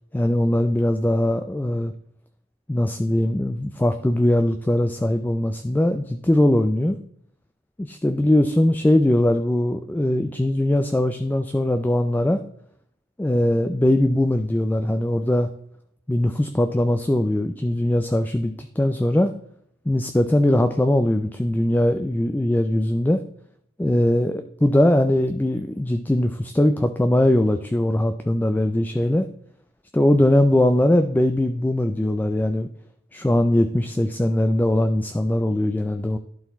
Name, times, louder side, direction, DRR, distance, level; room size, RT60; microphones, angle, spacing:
voice 1, 0.1-1.9 2.7-7.0 7.8-12.4 13.2-15.5 16.1-19.3 19.9-23.2 23.8-29.3 29.9-32.7 33.1-36.2, left 1 dB, 10° left, 8 dB, 0.3 m, -21 dB
11.5 x 4.0 x 4.1 m, 0.68 s
head